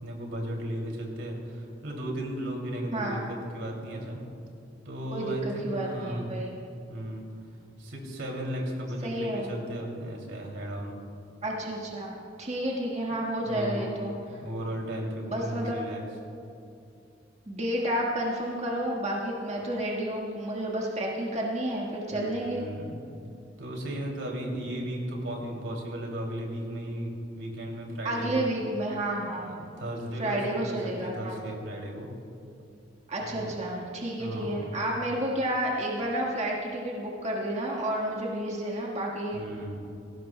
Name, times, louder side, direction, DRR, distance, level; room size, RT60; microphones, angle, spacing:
voice 1, 0.0-4.2 4.8-6.3 6.9-7.3 7.8-10.9 13.4-14.0 14.4-16.0 22.1-23.0 23.6-28.5 29.4-32.1 33.2-33.6 34.2-34.8 39.3-39.8, right 1 dB, 90° right, 0 dB, 2.7 m, -35 dB
voice 2, 2.9-3.3 5.1-6.5 9.0-9.5 11.4-14.1 15.3-15.8 17.5-22.7 28.0-29.6 30.2-31.4 33.1-39.4, right 1 dB, 35° right, -3 dB, 1.6 m, -31 dB
19.0 x 16.0 x 2.2 m, 2.6 s
head